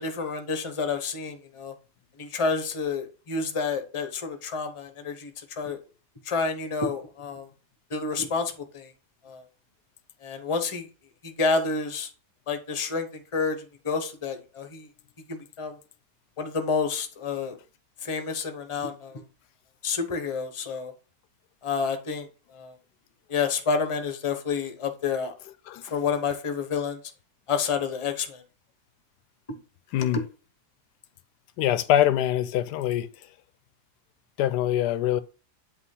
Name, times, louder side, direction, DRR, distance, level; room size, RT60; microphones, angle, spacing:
voice 1, 0.0-1.7 2.2-5.8 6.2-7.5 7.9-8.9 9.2-9.4 10.2-10.9 11.2-12.1 12.5-13.6 13.8-14.9 15.3-15.8 16.4-17.6 18.0-19.2 19.8-20.9 21.6-22.8 23.3-25.3 25.9-27.0 27.5-28.4, left 5 dB, 25° left, 0.7 m, -29 dB
voice 2, 31.6-33.1 34.4-35.2, left 12 dB, 90° left, 1.2 m, -24 dB
8.1 x 3.0 x 5.5 m
omnidirectional pair, 1.7 m